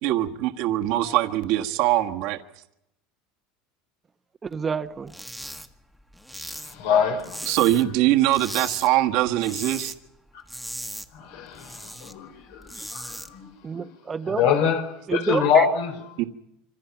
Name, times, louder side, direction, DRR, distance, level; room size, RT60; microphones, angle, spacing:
voice 1, 0.0-2.4 7.5-9.9 16.2-16.3, right 14 dB, 65° right, 1.5 m, -22 dB
voice 2, 4.4-5.2 12.7-12.9 13.6-14.4 15.1-15.7, right 5 dB, 20° right, 1.0 m, -29 dB
sound 1, 5.1-5.7 5.9-8.0 8.3-8.9 9.2-10.0 10.3-12.1 12.5-13.3, equal, ahead, 1.5 m, -37 dB
voice 3, 6.4-7.6 10.3-10.4 11.1-13.9 14.2-16.0, left 7 dB, 80° left, 4.3 m, -25 dB
26.0 x 25.5 x 5.9 m
supercardioid pair, 125°, 0 cm